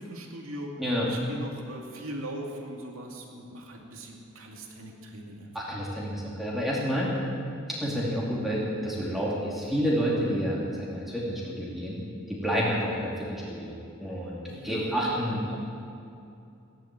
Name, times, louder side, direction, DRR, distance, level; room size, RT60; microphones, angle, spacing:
voice 1, 0.0-0.7 1.0-5.5 14.4-15.2, right 1 dB, 80° right, 0 dB, 2.5 m, -40 dB
voice 2, 5.5-7.1 7.8-12.0 12.3-13.7 14.0-14.4 14.6-15.5, equal, ahead, -6 dB, 2.5 m, -29 dB
16.0 x 11.0 x 7.5 m, 2.6 s
head